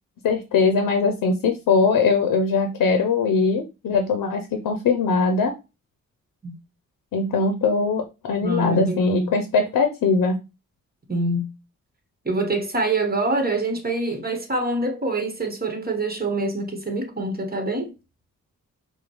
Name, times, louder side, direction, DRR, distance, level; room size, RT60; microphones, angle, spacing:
voice 1, 0.2-5.5 7.1-10.4, left 4 dB, 85° left, 0.6 m, -21 dB
voice 2, 8.4-9.4 11.1-11.5 12.2-17.9, right 2 dB, 30° right, 1.3 m, -25 dB
4.8 x 2.3 x 3.1 m
cardioid pair, 55°, 32 cm